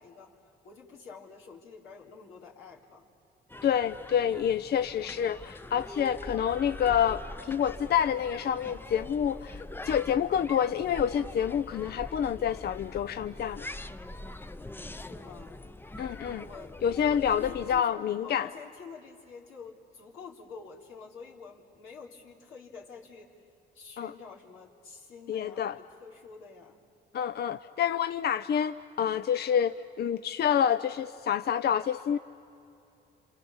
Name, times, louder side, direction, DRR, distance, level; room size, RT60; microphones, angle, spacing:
voice 1, 0.0-3.1 14.9-15.6 16.3-23.3 23.7-26.8, left 5 dB, 85° left, -2 dB, 3.5 m, -48 dB
sound 1, 3.5-17.8, left 2 dB, 10° left, 0.6 m, -43 dB
voice 2, 3.6-13.7 16.0-16.5 16.8-18.5 24.0-24.1 25.3-25.8 27.1-32.2, left 8 dB, 55° left, 12 dB, 0.6 m, -28 dB
28.5 x 26.5 x 7.1 m, 2.8 s
cardioid pair, 90°, 20 cm